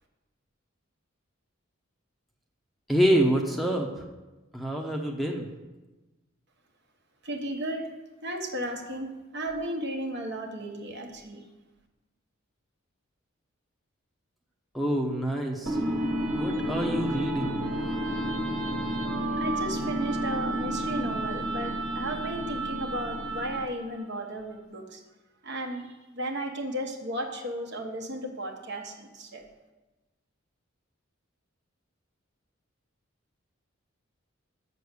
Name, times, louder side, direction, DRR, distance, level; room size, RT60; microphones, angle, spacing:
voice 1, 2.9-3.9 4.5-5.5 14.7-15.8 16.3-17.6, right 1 dB, ahead, -1 dB, 0.8 m, -26 dB
voice 2, 7.2-7.9 8.2-11.4 19.4-25.0 25.4-25.9 26.1-29.4, right 1 dB, 55° right, 3 dB, 1.4 m, -34 dB
sound 1, 15.7-23.8, right 1 dB, 70° right, 1.8 m, -30 dB
7.6 x 6.8 x 8.2 m, 1.1 s
head